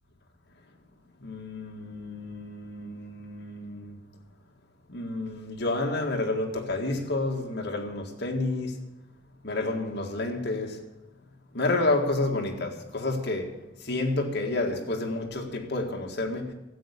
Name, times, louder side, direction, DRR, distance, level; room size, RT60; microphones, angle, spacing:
voice 1, 1.2-4.0 4.9-8.8 9.4-10.8 11.5-16.5, left 2 dB, 55° left, 1.9 m, -30 dB
13.0 x 8.2 x 8.3 m
head